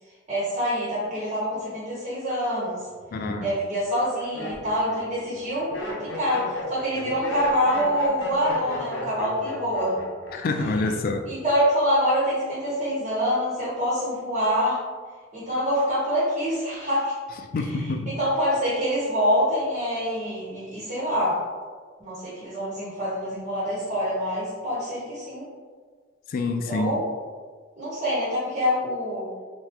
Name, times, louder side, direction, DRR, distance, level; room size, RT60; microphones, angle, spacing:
voice 1, 0.3-2.8 3.4-5.7 6.0-10.0 11.3-14.8 15.3-17.1 17.5-21.4 22.0-25.5 26.6-27.0 27.8-29.3, equal, 40° right, -10 dB, 1.0 m, -25 dB
Laughter, 2.9-3.4 4.0-10.6 10.9-11.4, left 1 dB, 75° left, 0.7 m, -35 dB
voice 2, 3.1-3.5 10.3-11.2 17.5-18.1 26.3-27.0, left 3 dB, 50° left, 5 dB, 0.3 m, -26 dB
3.0 x 2.3 x 3.4 m, 1.5 s
head